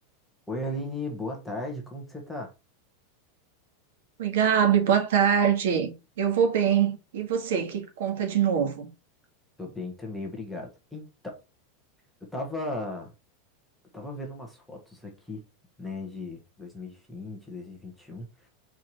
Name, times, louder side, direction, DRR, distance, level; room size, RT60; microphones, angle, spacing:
voice 1, 0.5-2.5 9.6-11.4 12.3-13.1 13.9-15.4 15.8-18.5, left 1 dB, ahead, 1.2 m, -36 dB
voice 2, 4.2-8.9, right 8 dB, 75° right, 1.9 m, -24 dB
4.7 x 4.4 x 4.7 m
supercardioid pair, 175°, 0 cm